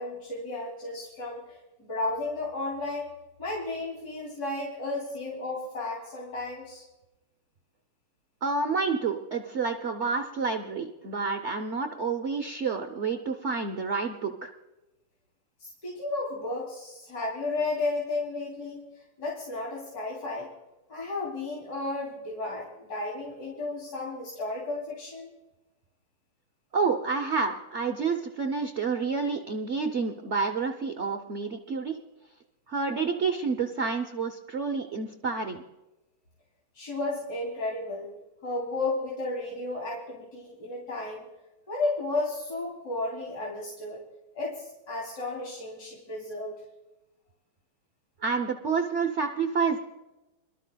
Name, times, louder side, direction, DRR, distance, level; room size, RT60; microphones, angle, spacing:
voice 1, 0.0-3.1 3.4-6.8 15.6-20.5 20.9-25.3 36.7-38.1 38.4-41.3 41.7-44.0 44.3-46.6, left 2 dB, 45° left, -5 dB, 3.7 m, -33 dB
voice 2, 8.4-14.5 26.7-32.0 32.7-35.6 48.2-49.8, right 4 dB, 80° right, 3 dB, 0.6 m, -29 dB
26.5 x 13.0 x 2.3 m, 1.0 s
omnidirectional pair, 2.4 m